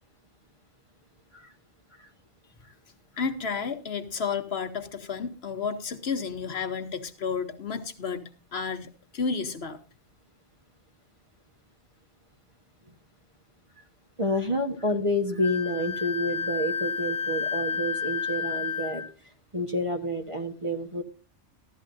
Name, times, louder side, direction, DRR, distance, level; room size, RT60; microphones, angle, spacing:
voice 1, 3.2-9.8, left 5 dB, 60° left, 7 dB, 1.2 m, -32 dB
voice 2, 14.2-19.0 19.5-21.0, left 1 dB, 30° right, 4 dB, 1.0 m, -29 dB
Wind instrument woodwind instrument, 15.4-19.1, left 6 dB, 85° left, 1.0 m, -31 dB
15.0 x 12.0 x 2.6 m, 0.35 s
omnidirectional pair, 1.2 m